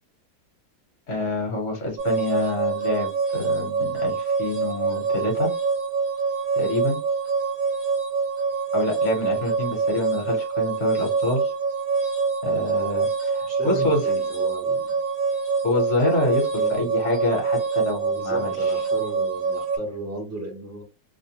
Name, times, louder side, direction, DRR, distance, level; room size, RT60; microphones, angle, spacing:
voice 1, 1.1-5.5 6.6-7.0 8.7-11.5 12.4-14.0 15.6-18.7, left 1 dB, 55° left, 1.2 m, -26 dB
sound 1, 2.0-19.8, right 5 dB, 45° right, 0.9 m, -25 dB
voice 2, 13.5-15.0 16.5-16.9 18.1-20.8, right 1 dB, 15° right, 0.6 m, -35 dB
2.7 x 2.1 x 2.8 m
omnidirectional pair, 1.7 m